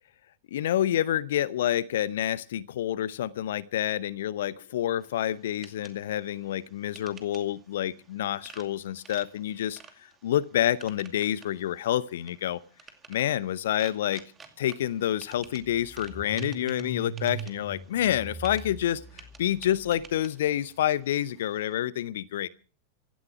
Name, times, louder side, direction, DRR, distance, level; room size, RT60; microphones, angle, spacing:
voice 1, 0.5-12.6 13.1-14.2 14.6-22.5, left 11 dB, 60° left, 21 dB, 0.7 m, -28 dB
sound 1, 5.0-21.7, right 6 dB, 20° right, 2.5 m, -53 dB
Car / Engine starting, 14.4-14.5 14.8-20.0, right 1 dB, 5° right, 3.3 m, -41 dB
16.5 x 13.5 x 5.9 m, 0.40 s
figure-of-eight pair, 90°, 0 cm